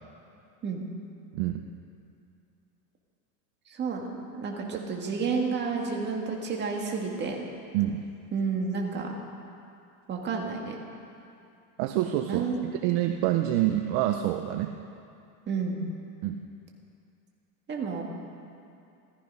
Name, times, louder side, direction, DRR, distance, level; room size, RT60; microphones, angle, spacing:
voice 1, 1.3-1.7 7.7-8.0 11.8-14.7 16.2-16.4, right 13 dB, 50° right, 6 dB, 0.7 m, -27 dB
voice 2, 3.7-7.4 8.3-9.1 10.1-10.8 12.3-12.7 15.5-15.9 17.7-18.0, right 5 dB, 25° right, 1 dB, 1.9 m, -31 dB
14.5 x 14.0 x 5.5 m, 2.6 s
supercardioid pair, 145°, 45 cm